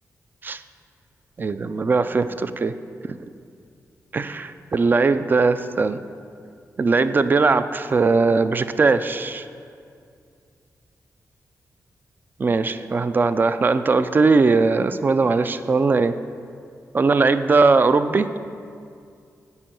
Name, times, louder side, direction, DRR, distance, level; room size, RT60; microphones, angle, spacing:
voice 1, 1.4-2.7 3.1-3.2 4.1-6.0 6.8-9.5 12.4-16.2 16.9-18.3, right 4 dB, 30° right, 12 dB, 0.3 m, -19 dB
9.7 x 4.7 x 7.5 m, 2.3 s
wide cardioid pair, 145°, 6 cm